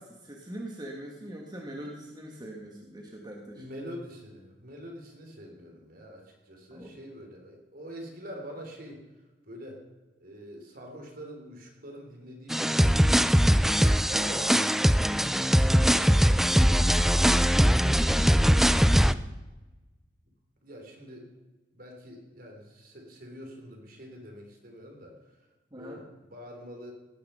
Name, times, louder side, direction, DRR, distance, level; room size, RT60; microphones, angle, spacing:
voice 1, 0.0-3.6 6.7-6.9 14.1-14.7 25.7-26.0, right 1 dB, 25° right, 0 dB, 1.8 m, -41 dB
voice 2, 3.5-9.0 9.4-9.8 10.2-14.0 15.6-16.4 17.2-19.2 20.6-21.3 21.7-25.5 25.8-26.9, equal, 55° right, 2 dB, 3.6 m, -45 dB
sound 1, 12.5-19.1, equal, ahead, 0.4 m, -21 dB
17.5 x 10.0 x 5.7 m, 1.1 s
head